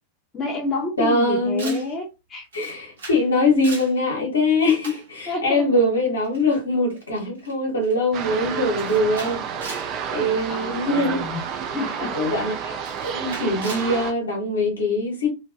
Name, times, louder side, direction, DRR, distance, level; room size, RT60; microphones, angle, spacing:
voice 1, 0.3-2.5 5.3-5.8 10.2-11.4 11.7-12.2, left 3 dB, 20° left, 0.7 m, -30 dB
voice 2, 1.0-1.8 2.5-9.4 10.1-11.2 12.1-15.3, left 2 dB, 75° left, 1.0 m, -22 dB
Camera, 1.6-1.9 2.5-3.3 3.5-4.0 4.8-5.1 6.2-6.4 6.9-7.0 7.4-7.6 7.8-8.1 8.8-9.9 10.6-10.8 11.8-11.9 12.8-13.9, right 3 dB, 65° right, 0.8 m, -38 dB
sound 1, 8.1-14.1, right 7 dB, 40° right, 0.4 m, -30 dB
2.4 x 2.3 x 2.2 m
figure-of-eight pair, 90°, 0 cm